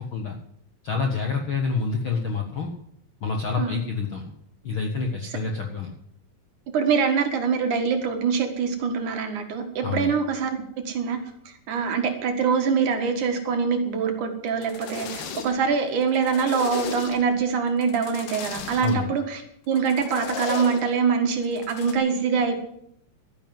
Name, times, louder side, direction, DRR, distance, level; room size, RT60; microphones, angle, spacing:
voice 1, 0.8-2.7 3.2-4.2 4.6-5.9 9.8-10.1 18.8-19.1, left 4 dB, 55° left, 2 dB, 1.5 m, -27 dB
voice 2, 6.7-10.5 10.9-11.2 11.5-19.4 19.7-22.6, right 6 dB, 60° right, 5 dB, 3.0 m, -24 dB
sound 1, 14.5-15.7 16.0-17.4 17.8-19.0 19.8-20.9 21.4-21.9, left 6 dB, 70° left, 3.2 m, -35 dB
12.5 x 10.5 x 7.7 m, 0.73 s
omnidirectional pair, 4.1 m